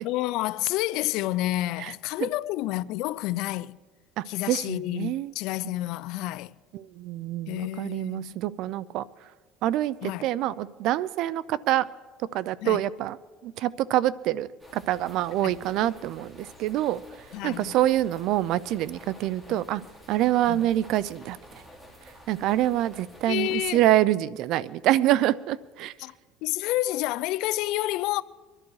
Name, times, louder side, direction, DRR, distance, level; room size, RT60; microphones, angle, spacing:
voice 1, 0.0-3.8 4.3-6.5 7.5-8.4 10.0-10.3 12.6-12.8 15.4-15.5 17.3-17.8 19.5-19.6 20.5-20.6 23.3-23.8 26.0-26.1 26.4-28.2, left 16 dB, 70° left, 0.4 m, -29 dB
voice 2, 4.2-5.3 6.7-9.0 9.6-11.9 12.3-13.2 13.4-17.0 17.4-19.8 20.1-21.4 22.3-25.9, right 13 dB, 65° right, 0.5 m, -26 dB
sound 1, 14.6-23.7, equal, 10° right, 3.3 m, -50 dB
23.0 x 11.5 x 4.8 m
supercardioid pair, 110°, 0 cm